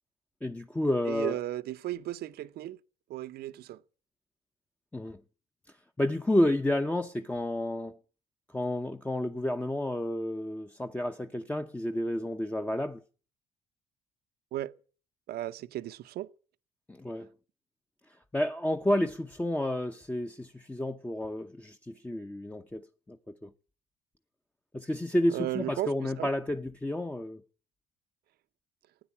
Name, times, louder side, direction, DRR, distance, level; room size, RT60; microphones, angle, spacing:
voice 1, 0.4-1.4 4.9-5.2 6.0-8.0 8.5-13.0 16.9-17.3 18.3-23.5 24.7-27.4, left 1 dB, 10° left, 0.8 m, -30 dB
voice 2, 1.1-2.8 3.1-3.8 14.5-14.7 15.3-16.3 25.3-26.3, right 14 dB, 70° right, 0.8 m, -35 dB
16.5 x 9.7 x 8.4 m
cardioid pair, 110°, 17 cm